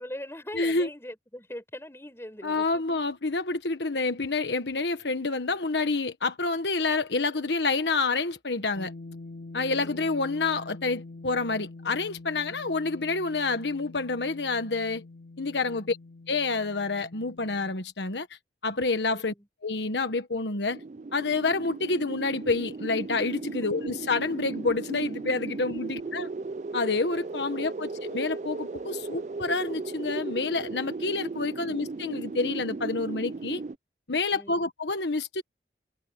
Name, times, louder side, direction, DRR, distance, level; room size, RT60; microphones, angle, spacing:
voice 1, 0.0-3.0 9.7-10.1 15.5-15.9 19.1-19.5 23.6-23.9 25.9-26.3 27.5-28.0 31.5-31.8 34.3-34.7, left 1 dB, 15° left, 5.6 m, -43 dB
voice 2, 0.5-0.9 2.4-8.9 9.5-15.0 15.4-16.0 16.3-18.3 18.6-19.3 19.6-20.8 21.1-26.3 26.7-33.6 34.1-35.4, left 3 dB, 85° left, 1.4 m, -28 dB
sound 1, 8.8-17.8, left 2 dB, 55° left, 2.8 m, -45 dB
sound 2, 20.7-33.7, right 3 dB, 40° right, 0.4 m, -36 dB
head